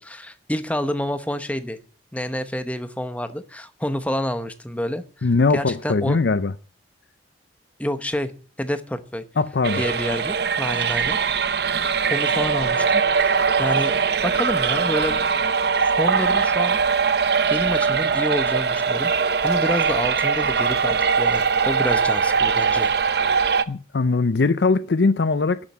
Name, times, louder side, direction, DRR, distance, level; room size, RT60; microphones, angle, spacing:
voice 1, 0.0-1.8 2.1-5.3 5.5-6.2 7.8-9.2 9.8-11.2 12.1-13.9 14.2-15.2 16.0-16.8 17.5-19.1 19.4-22.9, equal, 5° left, 0.9 m, -28 dB
voice 2, 5.2-6.5 9.4-9.8 23.7-25.6, left 3 dB, 70° left, 0.6 m, -20 dB
sound 1, 9.6-23.6, right 5 dB, 60° right, 0.8 m, -21 dB
11.5 x 7.4 x 8.5 m
head